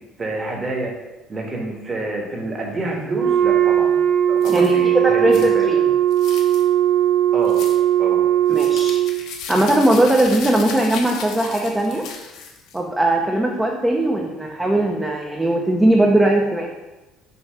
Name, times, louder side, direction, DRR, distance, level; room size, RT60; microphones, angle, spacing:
voice 1, 0.2-0.9 1.3-3.9 4.3-5.9 7.3-7.6 8.0-8.2, right 2 dB, 25° right, 0 dB, 1.4 m, -28 dB
Wind instrument woodwind instrument, 3.1-9.2, right 11 dB, 60° right, 0.9 m, -18 dB
sound 1, 4.4-4.8 5.3-5.5 6.1-6.6 7.5-7.8 8.5-12.8, left 6 dB, 75° left, 1.1 m, -35 dB
voice 2, 5.0-5.8 8.5-9.0 9.5-12.0 12.7-16.7, right 1 dB, 10° right, 0 dB, 0.7 m, -19 dB
6.8 x 3.0 x 5.6 m, 1.1 s
cardioid pair, 125°, 0 cm